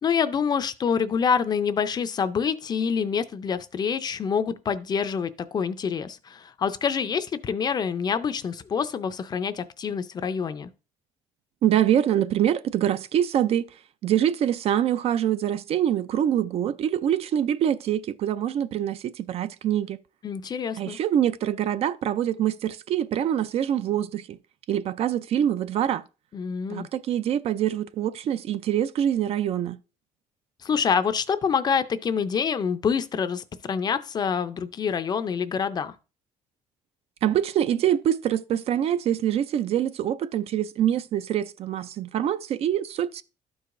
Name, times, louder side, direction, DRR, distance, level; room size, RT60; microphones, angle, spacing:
voice 1, 0.0-10.7 20.2-21.0 26.3-26.9 30.6-35.9, left 6 dB, 35° left, 0.4 m, -26 dB
voice 2, 11.6-13.7 14.0-20.0 20.8-24.4 24.7-26.0 26.7-29.8 37.2-43.2, right 10 dB, 55° right, 0.4 m, -25 dB
12.5 x 4.7 x 2.5 m
cardioid pair, 145°, 13 cm